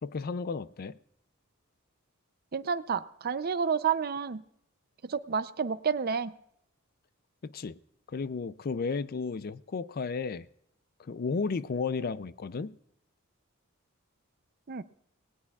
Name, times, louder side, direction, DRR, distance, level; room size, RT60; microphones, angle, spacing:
voice 1, 0.0-1.0 7.4-7.8 8.1-10.5 11.0-12.7, left 4 dB, 45° left, 0.4 m, -33 dB
voice 2, 2.5-4.4 5.0-6.3 14.7-14.8, right 6 dB, 45° right, 0.5 m, -30 dB
19.0 x 18.0 x 2.4 m
head